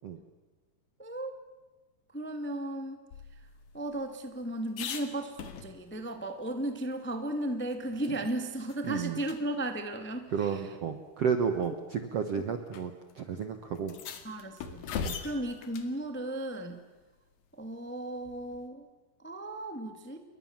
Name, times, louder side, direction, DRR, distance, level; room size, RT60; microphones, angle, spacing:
voice 1, 1.0-1.3 2.1-3.0 3.7-10.6 14.2-14.8 15.2-16.8 17.5-18.9 19.2-20.2, right 1 dB, 5° left, 6 dB, 1.1 m, -35 dB
sound 1, 3.1-6.1 6.5-6.6 6.9-8.4 8.7-8.8 9.2-9.4 10.4-10.5 11.4-11.7 12.7-12.8 13.1-13.2 13.8-16.0 18.2-18.7, left 7 dB, 70° left, 3.8 m, -41 dB
voice 2, 8.8-9.2 10.3-13.9 15.0-15.2, right 6 dB, 60° right, 7 dB, 1.7 m, -32 dB
29.0 x 23.0 x 7.4 m, 1.2 s
omnidirectional pair, 4.5 m